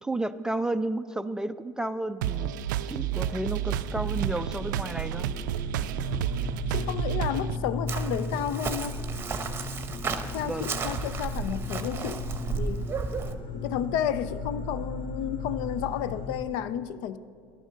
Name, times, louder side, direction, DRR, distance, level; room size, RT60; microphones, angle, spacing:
voice 1, 0.0-2.5 2.9-5.3 10.4-10.7, right 2 dB, 5° right, 0.3 m, -32 dB
sound 1, 2.2-7.6, right 10 dB, 85° right, 0.4 m, -30 dB
sound 2, 3.0-16.4, left 2 dB, 45° left, 1.5 m, -36 dB
voice 2, 6.7-9.0 10.3-12.9 13.5-17.2, left 9 dB, 65° left, 0.5 m, -32 dB
Chirp tweet, 7.9-13.4, right 5 dB, 25° right, 0.9 m, -34 dB
11.0 x 9.1 x 6.3 m
supercardioid pair, 110°, 10 cm